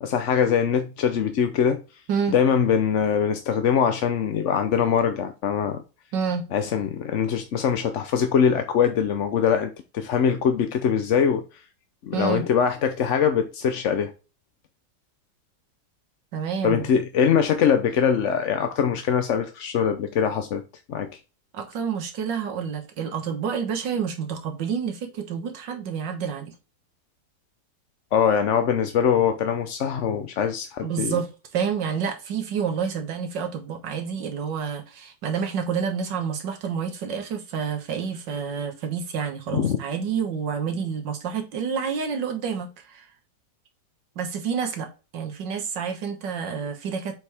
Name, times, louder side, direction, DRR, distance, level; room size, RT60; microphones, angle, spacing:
voice 1, 0.0-1.8 2.3-5.8 6.5-11.4 12.0-14.1 16.6-20.6 20.9-21.1 28.1-31.2 39.5-39.8, left 7 dB, 55° left, 0.9 m, -22 dB
voice 2, 6.1-6.5 12.1-12.5 16.3-16.9 21.5-26.5 30.8-43.1 44.2-44.9 45.1-47.1, right 6 dB, 90° right, 1.9 m, -29 dB
7.7 x 4.6 x 3.5 m
omnidirectional pair, 1.9 m